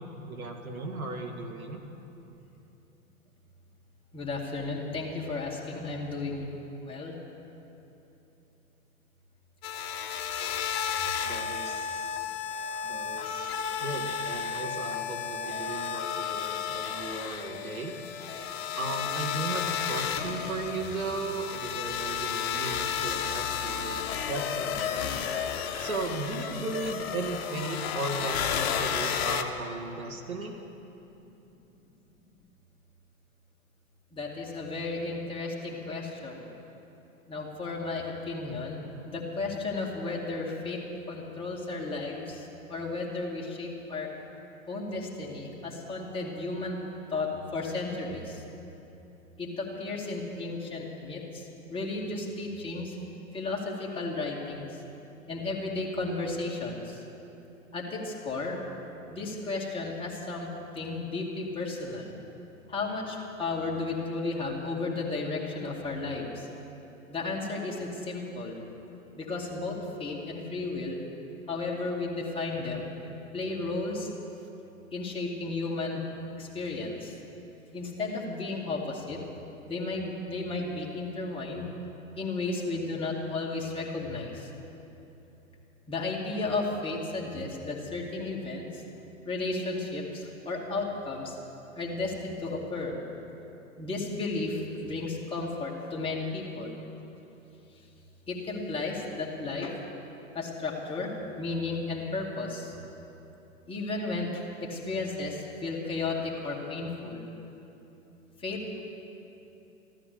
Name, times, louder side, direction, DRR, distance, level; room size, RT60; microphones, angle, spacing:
voice 1, 0.0-1.8 11.2-12.3 12.8-17.9 18.7-25.3 25.8-30.6, right 3 dB, 80° right, 3 dB, 1.9 m, -36 dB
voice 2, 4.1-6.5 6.8-7.1 34.1-36.3 37.3-40.8 41.1-42.2 42.7-44.1 44.7-46.8 47.1-47.3 47.5-48.2 49.4-51.2 51.7-52.9 53.3-54.7 55.3-56.7 57.7-58.6 59.1-60.5 60.8-62.1 62.7-66.3 67.1-68.6 69.2-69.7 70.0-71.0 71.5-72.9 73.3-74.1 74.9-76.0 76.5-76.9 77.7-78.8 79.1-79.2 79.7-81.7 82.2-84.3 85.9-88.6 89.3-90.0 90.5-91.3 91.8-92.9 93.8-96.7 98.3-99.7 100.4-102.6 103.7-104.3 104.7-105.3 105.6-106.2 106.4-107.2 108.4-108.8, left 3 dB, 10° left, -3 dB, 2.3 m, -33 dB
sound 1, 9.6-29.4, left 8 dB, 45° left, 1.1 m, -32 dB
14.0 x 13.5 x 6.8 m, 3.0 s
hypercardioid pair, 115°, 42 cm